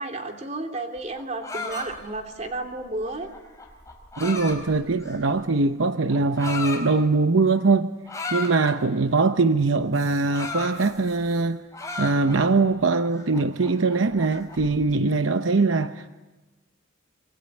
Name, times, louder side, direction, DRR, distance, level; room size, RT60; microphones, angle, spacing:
voice 1, 0.0-3.3, right 2 dB, 35° right, 3.1 m, -32 dB
sound 1, 1.0-5.4 6.1-6.8 8.1-8.8 9.9-11.4 11.7-12.6 13.0-14.7, left 3 dB, 15° left, 4.7 m, -35 dB
voice 2, 4.2-7.9 8.3-11.6 12.0-16.1, right 3 dB, 75° right, 0.8 m, -22 dB
25.5 x 24.5 x 9.6 m
head